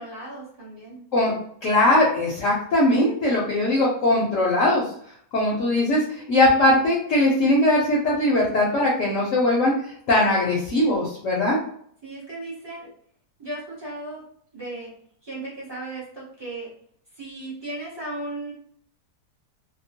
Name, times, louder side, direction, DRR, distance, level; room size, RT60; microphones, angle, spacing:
voice 1, 0.0-1.0 12.0-12.9 13.4-14.2 14.5-14.9 15.2-16.7 17.2-18.5, right 2 dB, 30° right, -7 dB, 0.5 m, -36 dB
voice 2, 1.6-4.8 5.3-11.6, left 1 dB, 60° left, -4 dB, 0.9 m, -20 dB
2.8 x 2.0 x 2.7 m, 0.64 s
omnidirectional pair, 1.8 m